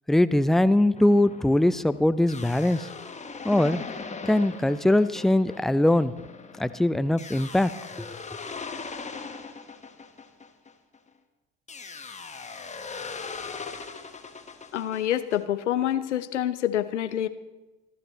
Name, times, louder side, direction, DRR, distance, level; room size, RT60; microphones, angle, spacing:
voice 1, 0.1-2.9 3.4-3.8 4.3-6.1 6.6-7.7 8.0-8.1, left 1 dB, ahead, 15 dB, 0.4 m, -21 dB
sound 1, 1.0-11.1 11.7-15.4, left 4 dB, 20° left, 1.5 m, -40 dB
voice 2, 14.7-17.3, left 11 dB, 75° left, 12 dB, 0.7 m, -27 dB
26.5 x 12.5 x 3.1 m, 1.1 s
figure-of-eight pair, 55°, 36 cm